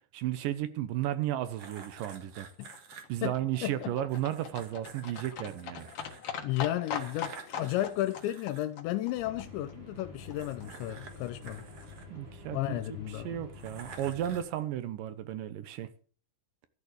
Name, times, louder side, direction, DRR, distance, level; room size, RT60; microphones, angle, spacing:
voice 1, 0.1-2.8 3.1-5.9 12.1-15.9, right 12 dB, 80° right, 2.0 m, -34 dB
sound 1, 1.6-3.0 4.1-6.3 6.9-8.6 10.2-12.7 13.5-14.6, right 5 dB, 55° right, 1.8 m, -50 dB
Livestock farm animals working animals, 2.1-10.3 10.6-10.7 10.9-11.0 11.2-11.3 11.5-11.6 11.8-11.9 12.2-12.3 12.5-12.6 12.8-12.9, left 7 dB, 70° left, 1.4 m, -42 dB
voice 2, 3.6-3.9 6.4-11.6 12.5-13.4, left 14 dB, 85° left, 3.1 m, -33 dB
sound 2, 9.1-14.4, left 2 dB, 30° right, 5.0 m, -48 dB
13.5 x 7.2 x 8.3 m
omnidirectional pair, 5.1 m